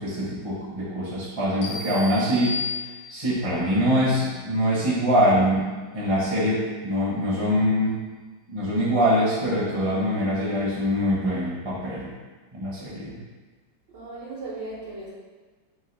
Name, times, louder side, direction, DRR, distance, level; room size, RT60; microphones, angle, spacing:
voice 1, 0.0-2.6 3.1-5.7 5.9-8.0 8.5-12.1 12.5-13.1, equal, 20° right, -8 dB, 0.9 m, -23 dB
sound 1, 1.6-3.4, left 3 dB, 60° left, 0.7 m, -33 dB
voice 2, 13.9-15.1, right 2 dB, 70° right, -6 dB, 1.7 m, -36 dB
4.0 x 3.3 x 3.3 m, 1.4 s
omnidirectional pair, 2.1 m